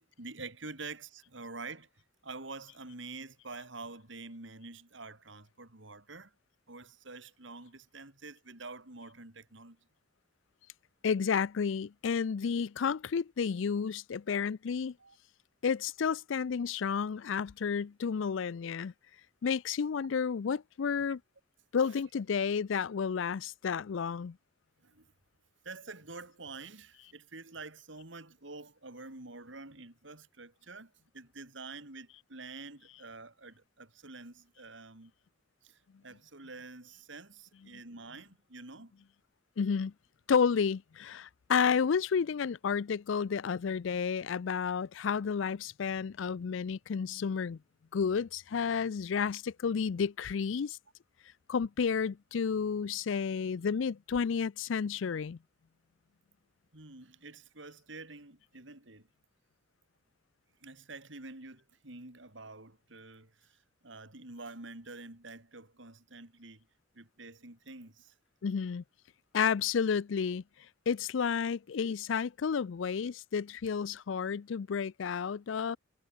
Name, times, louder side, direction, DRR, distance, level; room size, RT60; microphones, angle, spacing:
voice 1, 0.0-1.9 2.2-6.3 6.7-9.8 15.0-15.2 24.8-25.1 25.6-35.1 35.6-38.9 56.7-59.1 60.6-63.6 63.8-66.7 66.9-68.1, right 3 dB, 65° right, 3.3 m, -47 dB
voice 2, 11.0-14.9 15.6-18.9 19.4-21.2 21.7-24.4 39.6-39.9 40.3-47.6 47.9-50.8 51.5-55.4 68.4-68.8 69.3-70.4 70.9-75.8, left 6 dB, 70° left, 0.4 m, -31 dB
head